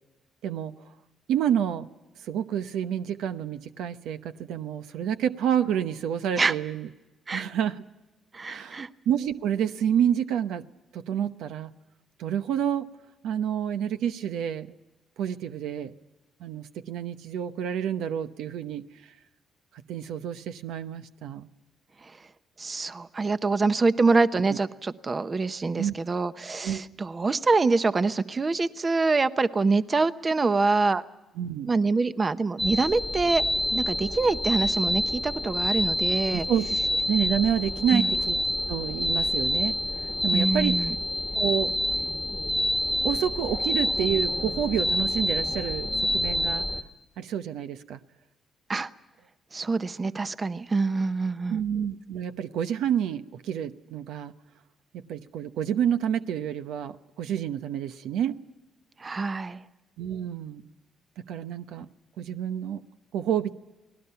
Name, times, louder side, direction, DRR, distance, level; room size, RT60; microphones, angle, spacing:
voice 1, 0.4-0.7 1.3-1.9 2.2-6.9 7.3-7.8 8.5-10.6 10.9-11.7 12.2-12.9 13.2-14.7 15.2-15.9 16.4-18.9 19.9-21.5 25.8-25.9 26.6-26.8 31.4-31.7 36.3-36.8 37.1-38.4 38.7-39.8 40.2-40.9 41.3-41.7 43.0-46.7 47.2-48.0 51.5-54.3 55.1-58.4 60.0-60.7 61.3-61.9 62.2-62.8 63.1-63.5, right 9 dB, 85° right, 10 dB, 0.9 m, -28 dB
voice 2, 8.3-8.9 22.6-31.0 31.7-33.4 33.7-36.5 37.9-38.1 40.3-40.9 48.7-48.9 49.5-51.6 59.0-59.6, right 3 dB, 30° right, 12 dB, 0.8 m, -25 dB
Even lower pitch mosquito sound, 32.6-46.8, left 1 dB, ahead, 1.4 m, -27 dB
29.5 x 19.0 x 5.7 m, 1.1 s
cardioid pair, 90°, 0 cm